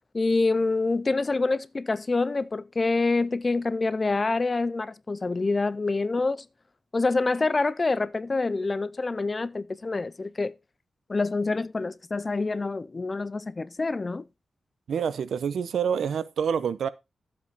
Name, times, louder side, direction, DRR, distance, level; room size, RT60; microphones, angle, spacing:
voice 1, 0.1-6.4 6.9-10.5 11.1-14.2, left 3 dB, 25° left, 0.5 m, -26 dB
voice 2, 14.9-16.9, right 7 dB, 80° right, 0.9 m, -27 dB
12.5 x 7.8 x 4.1 m
wide cardioid pair, 155°, 0 cm